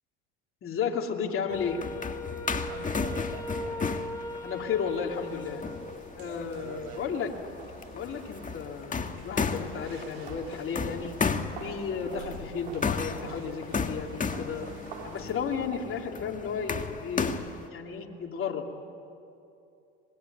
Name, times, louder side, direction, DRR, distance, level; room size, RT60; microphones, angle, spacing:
voice 1, 0.6-1.8 4.4-5.6 6.2-7.3 7.9-11.1 11.6-14.7 15.0-17.3 17.7-18.8, left 6 dB, 45° left, 1 dB, 2.9 m, -33 dB
sound 1, 1.5-17.7, left 5 dB, 25° left, 1.7 m, -35 dB
Wind instrument woodwind instrument, 1.5-6.1, left 1 dB, 10° left, 2.8 m, -39 dB
voice 2, 2.6-3.9 6.5-7.3, right 5 dB, 65° right, 6 dB, 4.8 m, -45 dB
sound 2, 5.1-15.4, right 5 dB, 85° right, 3.5 m, -48 dB
25.5 x 21.0 x 9.5 m, 2.7 s
supercardioid pair, 85°, 31 cm